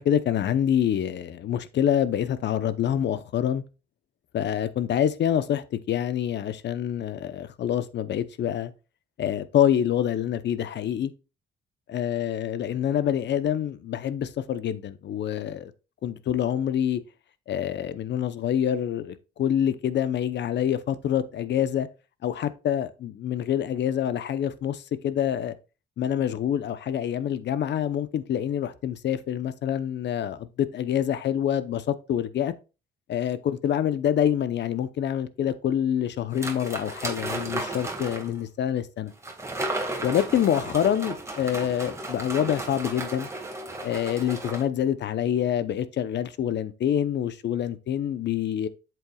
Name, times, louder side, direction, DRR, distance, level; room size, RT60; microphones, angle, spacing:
voice 1, 0.0-3.6 4.3-8.7 9.2-11.1 11.9-15.7 16.0-17.0 17.5-21.9 22.2-25.5 26.0-32.5 33.1-39.1 40.0-43.3 43.8-48.7, left 10 dB, 60° left, 0.8 m, -26 dB
sound 1, 36.3-38.4 39.2-44.6, right 2 dB, 15° right, 1.9 m, -34 dB
8.0 x 7.7 x 2.3 m
cardioid pair, 90°, 20 cm